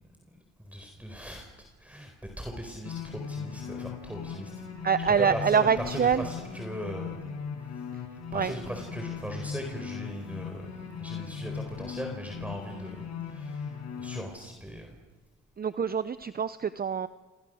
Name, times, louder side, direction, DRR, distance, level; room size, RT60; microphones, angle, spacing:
voice 1, 0.3-1.5 1.8-4.5 5.0-7.2 7.6-7.8 8.3-15.0, equal, 5° right, 3 dB, 4.5 m, -39 dB
sound 1, 2.8-14.2, left 6 dB, 60° left, 6.0 m, -38 dB
voice 2, 4.8-6.3 7.9-8.0 8.3-8.5 15.6-17.1, right 6 dB, 30° right, 13 dB, 0.8 m, -25 dB
28.5 x 26.5 x 6.4 m, 1.3 s
cardioid pair, 90°, 30 cm